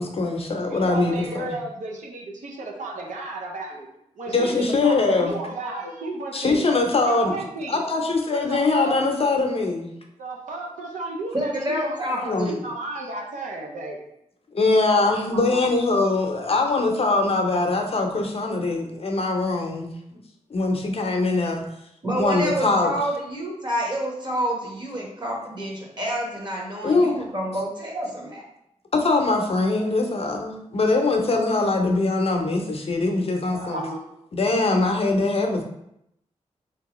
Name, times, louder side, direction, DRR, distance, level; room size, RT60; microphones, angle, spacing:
voice 1, 0.0-1.6 4.3-5.3 6.3-7.4 7.7-9.9 12.2-12.5 14.5-20.2 20.5-21.6 22.2-22.9 26.8-27.3 28.9-33.8 34.3-35.6, left 3 dB, 50° left, 2 dB, 0.6 m, -22 dB
voice 2, 0.7-3.9 4.2-6.7 7.0-7.8 8.3-9.1 10.2-14.0 14.9-15.7 33.5-34.1, right 2 dB, 85° right, 0 dB, 0.6 m, -33 dB
voice 3, 11.3-12.5 22.0-28.4, equal, 35° right, -2 dB, 1.2 m, -28 dB
3.4 x 2.9 x 3.0 m, 0.79 s
cardioid pair, 65°, 13 cm